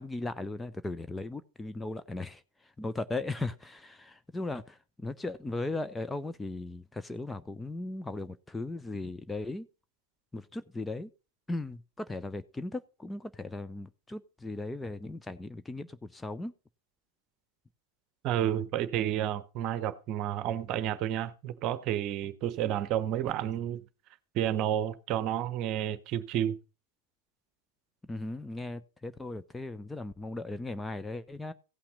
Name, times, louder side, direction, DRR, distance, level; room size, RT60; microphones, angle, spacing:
voice 1, 0.0-9.7 10.3-11.1 11.5-16.5 28.1-31.5, left 2 dB, 10° left, 0.6 m, -37 dB
voice 2, 18.2-23.8 24.3-26.6, right 11 dB, 40° right, 1.0 m, -30 dB
16.0 x 5.8 x 5.5 m
figure-of-eight pair, 90°, 0 cm